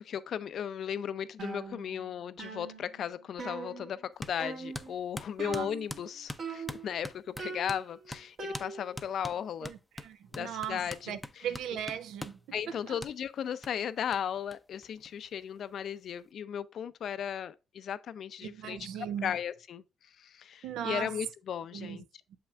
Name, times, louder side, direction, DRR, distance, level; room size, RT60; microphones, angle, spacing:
voice 1, 0.0-9.7 10.3-11.5 12.5-18.8 19.2-19.8 20.2-22.0, left 8 dB, 65° left, 0.5 m, -36 dB
sound 1, 1.4-2.1 2.4-4.1 4.4-4.9 5.4-6.1 6.4-7.0 7.4-9.1, right 4 dB, 60° right, 1.9 m, -42 dB
sound 2, 4.2-4.4 4.7-7.8 8.1-8.3 8.5-8.7 9.0-12.4 13.0-13.1 13.6-13.7 14.1-14.2 14.5-14.6 14.8-15.6, left 1 dB, 5° left, 0.6 m, -42 dB
voice 2, 9.6-12.4 12.7-13.0 18.4-19.3 20.6-21.2 21.7-22.0, right 9 dB, 85° right, 0.6 m, -38 dB
6.9 x 5.7 x 2.4 m
cardioid pair, 90°, 0 cm